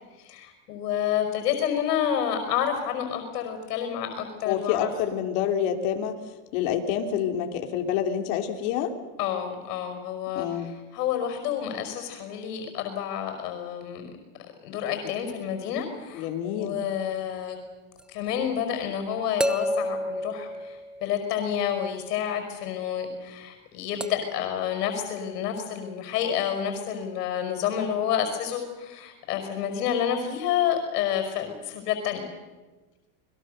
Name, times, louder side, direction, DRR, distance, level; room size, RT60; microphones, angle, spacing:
voice 1, 0.2-4.9 9.2-14.1 14.6-17.6 18.1-32.2, left 9 dB, 85° left, 6 dB, 5.5 m, -29 dB
voice 2, 4.4-6.2 6.5-8.9 10.3-10.7 16.1-16.8, left 9 dB, 60° left, 4 dB, 3.3 m, -27 dB
sound 1, 18.0-18.1 19.4-21.5 24.0-24.5 25.6-25.7, equal, ahead, 0.7 m, -30 dB
28.5 x 22.0 x 6.8 m, 1.2 s
supercardioid pair, 150°, 46 cm